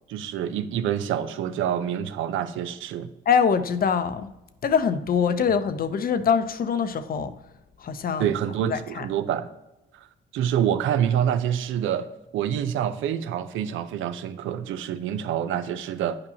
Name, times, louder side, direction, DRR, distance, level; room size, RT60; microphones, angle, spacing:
voice 1, 0.1-3.1 8.2-9.5 9.9-10.1 10.3-12.1 12.3-16.2, right 9 dB, 85° right, 12 dB, 0.5 m, -26 dB
voice 2, 3.3-4.3 4.6-7.3 7.8-8.3 8.7-9.1, left 6 dB, 50° left, 12 dB, 0.6 m, -23 dB
9.7 x 5.2 x 2.8 m, 0.95 s
cardioid pair, 90°, 20 cm